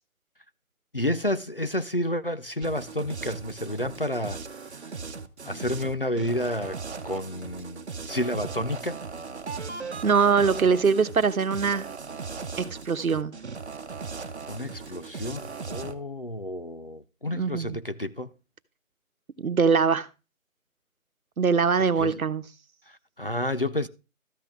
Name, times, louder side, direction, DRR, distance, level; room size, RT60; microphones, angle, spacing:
voice 1, 0.9-4.8 5.4-6.8 7.0-9.0 14.2-18.3 22.0-22.2 22.9-23.9, left 1 dB, 45° left, 0.4 m, -30 dB
sound 1, 2.6-15.9, right 5 dB, 55° right, 1.0 m, -38 dB
voice 2, 10.0-11.9 12.6-13.3 17.3-17.8 19.4-20.1 21.4-22.4, right 5 dB, 85° right, 1.1 m, -22 dB
13.0 x 6.1 x 3.5 m
figure-of-eight pair, 170°, 41 cm